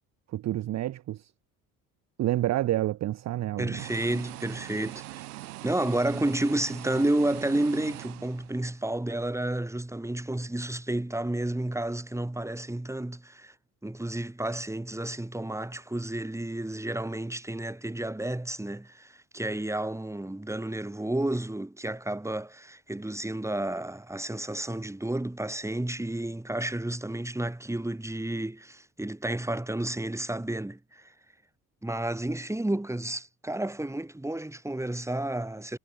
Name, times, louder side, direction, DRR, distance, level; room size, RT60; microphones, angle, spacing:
voice 1, 0.3-1.3 2.2-3.9, right 14 dB, 40° right, 0.6 m, -29 dB
voice 2, 3.6-5.2 5.6-13.5 13.8-31.1 31.8-35.8, right 1 dB, 5° right, 2.0 m, -31 dB
sound 1, 3.8-8.9, right 17 dB, 80° right, 5.3 m, -42 dB
hypercardioid pair, 55°, 44 cm